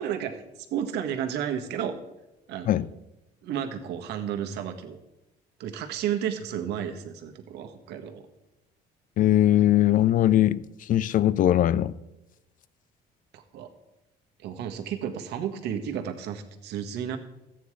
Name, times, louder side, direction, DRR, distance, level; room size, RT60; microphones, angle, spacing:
voice 1, 0.0-2.0 2.5-2.7 3.4-5.0 5.6-8.3 13.3-13.7 14.4-17.2, right 9 dB, 80° right, 1.6 m, -32 dB
voice 2, 9.2-10.6 10.9-12.0, left 12 dB, 50° left, 0.5 m, -20 dB
14.0 x 9.2 x 4.9 m
cardioid pair, 110°, 17 cm